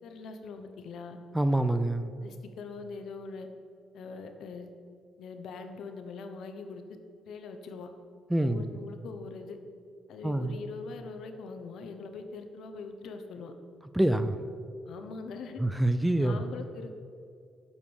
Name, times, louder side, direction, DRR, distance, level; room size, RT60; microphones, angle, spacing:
voice 1, 0.0-1.2 2.2-3.5 3.9-4.7 5.2-6.8 7.2-7.9 8.4-9.6 10.1-13.5 14.9-15.6 16.2-17.0, left 4 dB, 75° left, 6 dB, 0.9 m, -42 dB
voice 2, 1.3-2.1 8.3-8.7 10.2-10.6 13.9-14.4 15.6-16.4, right 1 dB, 5° right, 11 dB, 0.5 m, -26 dB
8.0 x 5.3 x 7.1 m, 2.4 s
cardioid pair, 90°, 0 cm